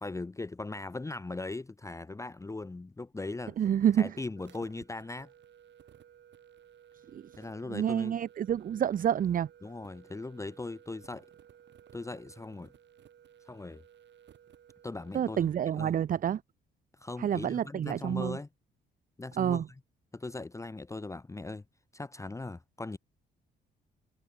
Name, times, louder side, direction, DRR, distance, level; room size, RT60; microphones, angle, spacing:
voice 1, 0.0-3.6 4.0-5.3 7.4-8.1 9.6-11.3 11.9-12.7 13.5-13.8 14.8-15.9 16.9-18.5 19.2-19.6 20.1-21.6 21.9-23.0, left 3 dB, 15° left, 0.9 m, -39 dB
voice 2, 3.6-4.2 7.1-7.3 7.7-9.5 15.1-16.4 17.2-18.4 19.4-19.7, right 9 dB, 45° right, 0.6 m, -28 dB
sound 1, 4.4-15.7, right 9 dB, 65° right, 6.3 m, -57 dB
cardioid pair, 90°, 20 cm